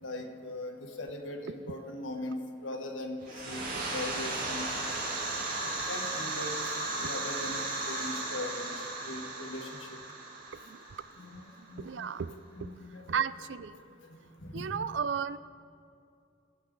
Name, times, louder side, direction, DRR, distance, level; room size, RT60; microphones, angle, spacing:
voice 1, 0.0-3.6 3.9-4.7 5.6-10.0 11.2-12.1 12.5-13.2 14.1-14.7, left 1 dB, 90° left, 3 dB, 1.6 m, -40 dB
sound 1, 3.2-11.8, right 2 dB, 45° right, 2.4 m, -35 dB
voice 2, 10.5-10.8 11.8-12.3 12.6-12.7 13.1-13.8 14.5-15.4, right 7 dB, 70° right, 15 dB, 0.4 m, -34 dB
23.5 x 8.6 x 3.9 m, 2.4 s
head